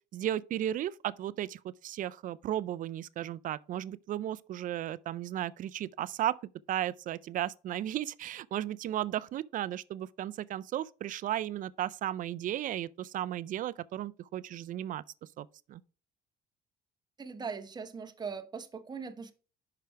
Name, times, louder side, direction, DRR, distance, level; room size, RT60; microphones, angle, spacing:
voice 1, 0.1-6.4 6.7-15.0 15.4-15.8, right 12 dB, 55° right, 0.4 m, -35 dB
voice 2, 17.2-19.3, right 5 dB, 25° right, 0.9 m, -40 dB
5.8 x 5.1 x 4.5 m
cardioid pair, 110°, 17 cm